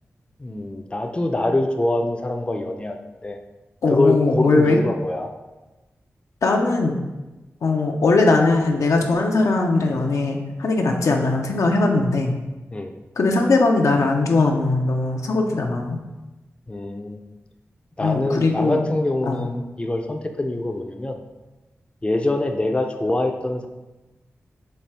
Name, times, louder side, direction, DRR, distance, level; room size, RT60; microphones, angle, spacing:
voice 1, 0.4-3.0 3.2-3.4 3.9-5.3 12.7-12.9 16.7-17.2 18.0-21.2 22.0-23.7, left 2 dB, 20° left, 5 dB, 0.4 m, -24 dB
voice 2, 3.8-4.8 6.4-7.0 7.6-12.3 13.2-16.0 18.0-18.9 19.3-19.5, left 3 dB, 80° left, 2 dB, 0.4 m, -20 dB
4.2 x 2.3 x 3.3 m, 1.1 s
cardioid pair, 45°, 5 cm